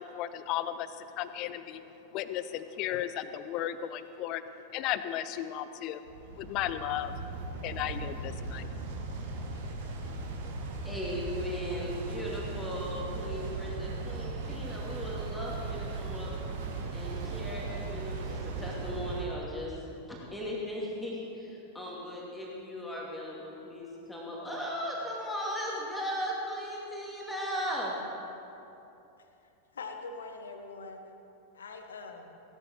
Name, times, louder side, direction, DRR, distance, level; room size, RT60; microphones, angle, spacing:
voice 1, 0.0-1.8 2.1-4.4 4.7-6.1 6.3-7.1 7.6-8.7, left 12 dB, 40° left, 12 dB, 0.6 m, -35 dB
sound 1, 6.1-19.2, right 3 dB, 55° right, 1.7 m, -37 dB
voice 2, 10.8-16.3 16.9-19.7 20.1-28.0, equal, 5° left, -5 dB, 2.5 m, -37 dB
voice 3, 29.7-31.0 31.5-32.4, left 4 dB, 65° left, 5 dB, 1.2 m, -43 dB
17.0 x 12.0 x 4.6 m, 2.9 s
figure-of-eight pair, 90°, 0 cm